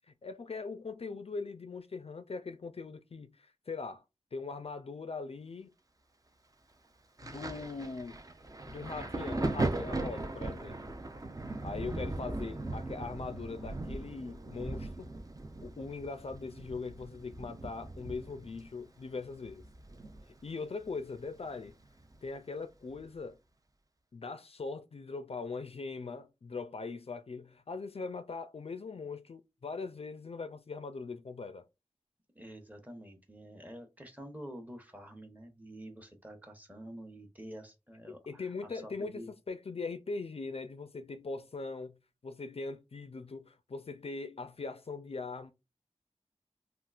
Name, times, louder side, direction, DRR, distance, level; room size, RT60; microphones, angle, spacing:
voice 1, 0.2-4.0 4.3-5.7 7.2-8.2 8.7-10.9 11.6-15.1 15.6-19.6 20.4-21.7 22.2-23.4 24.1-31.6 38.3-42.0 42.2-45.5, left 4 dB, 55° left, 0.4 m, -41 dB
Thunder, 7.2-20.5 20.8-22.2 23.0-23.2, right 2 dB, 30° right, 0.5 m, -39 dB
voice 2, 32.3-39.3, equal, 15° right, 0.8 m, -48 dB
3.6 x 2.4 x 2.3 m
wide cardioid pair, 70°, 12 cm